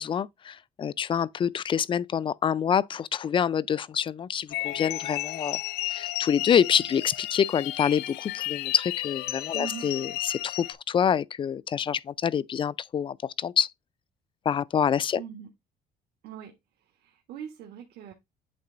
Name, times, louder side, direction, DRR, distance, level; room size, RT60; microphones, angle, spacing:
voice 1, 0.0-5.6 5.9-13.7 14.5-15.2, left 8 dB, 30° left, 0.3 m, -26 dB
sound 1, 4.5-10.7, left 16 dB, 85° left, 0.6 m, -33 dB
voice 2, 9.5-9.9 15.1-15.5 16.2-16.5 17.0-18.1, right 9 dB, 75° right, 1.5 m, -41 dB
8.6 x 3.3 x 3.8 m
cardioid pair, 110°, 17 cm